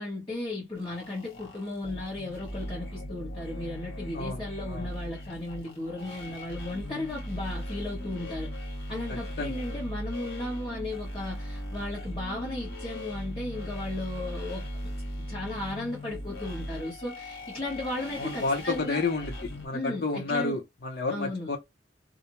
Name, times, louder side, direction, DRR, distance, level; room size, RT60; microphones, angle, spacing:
voice 1, 0.0-8.5 8.9-14.7 15.3-19.0 19.7-20.6 21.1-21.5, left 2 dB, 25° left, 1.0 m, -35 dB
sound 1, 0.8-19.7, equal, 80° left, 1.3 m, -38 dB
voice 2, 18.2-21.6, left 3 dB, 55° left, 0.7 m, -30 dB
2.5 x 2.1 x 2.9 m
head